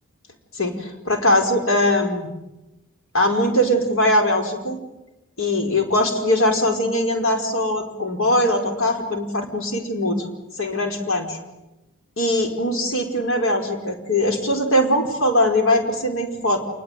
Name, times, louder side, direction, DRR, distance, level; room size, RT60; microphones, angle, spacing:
voice 1, 0.5-2.3 3.1-4.8 5.4-10.2 10.6-11.4 12.2-16.7, left 1 dB, 65° left, 3 dB, 5.0 m, -21 dB
28.5 x 20.5 x 9.3 m, 1.0 s
head